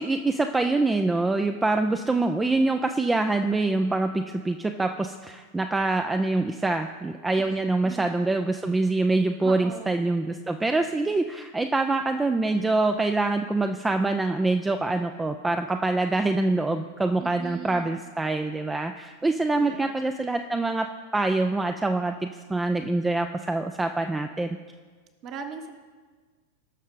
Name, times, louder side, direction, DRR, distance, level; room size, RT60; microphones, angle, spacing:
voice 1, 0.0-20.9 21.1-24.6, right 2 dB, 10° right, 7 dB, 0.4 m, -25 dB
voice 2, 9.4-9.9 17.2-17.9 19.6-19.9 25.2-25.7, right 5 dB, 35° right, 6 dB, 1.2 m, -39 dB
18.0 x 6.2 x 3.9 m, 1.5 s
figure-of-eight pair, 90°, 0 cm